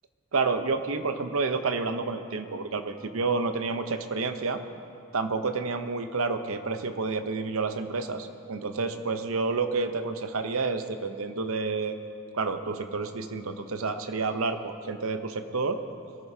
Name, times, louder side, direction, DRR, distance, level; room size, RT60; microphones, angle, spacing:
voice 1, 0.3-4.6 5.1-12.0 12.3-15.8, right 4 dB, 90° right, 8 dB, 0.8 m, -29 dB
22.0 x 14.5 x 2.8 m, 2.6 s
head